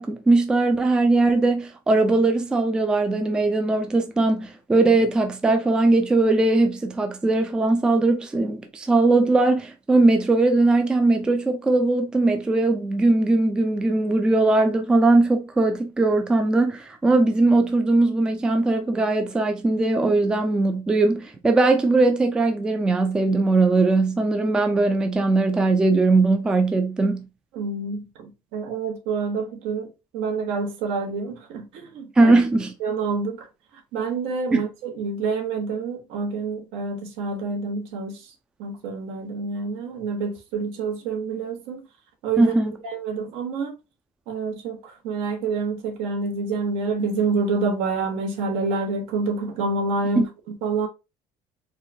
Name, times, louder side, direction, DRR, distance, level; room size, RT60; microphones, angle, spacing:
voice 1, 0.0-27.2 32.2-32.7 34.5-34.6 42.4-42.8 50.2-50.3, right 2 dB, 10° right, 0.3 m, -20 dB
voice 2, 27.5-29.9 30.1-32.3 32.8-33.5 33.9-38.2 38.6-41.8 42.2-42.5 42.8-43.8 44.3-50.3 50.6-50.9, right 4 dB, 75° right, 1.0 m, -27 dB
4.5 x 2.2 x 2.6 m
cardioid pair, 175°, 11 cm